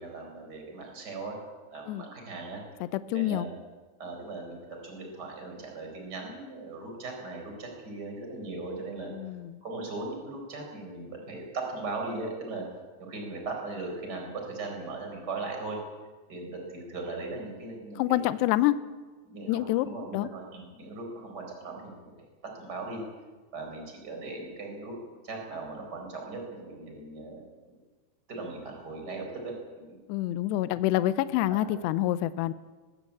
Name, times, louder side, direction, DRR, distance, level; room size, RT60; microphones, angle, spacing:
voice 1, 0.0-1.4 1.7-2.6 3.1-3.5 4.0-9.1 9.6-12.7 13.0-15.8 16.3-18.4 19.2-22.0 22.4-23.0 23.5-25.0 25.2-27.8 28.3-30.0 31.5-31.6, right 3 dB, 20° right, 2 dB, 4.6 m, -38 dB
voice 2, 2.8-3.5 9.1-9.6 18.0-18.8 19.5-19.9 20.1-20.3 30.1-32.5, left 15 dB, 80° left, 14 dB, 2.7 m, -27 dB
21.0 x 15.0 x 8.5 m, 1.3 s
omnidirectional pair, 5.3 m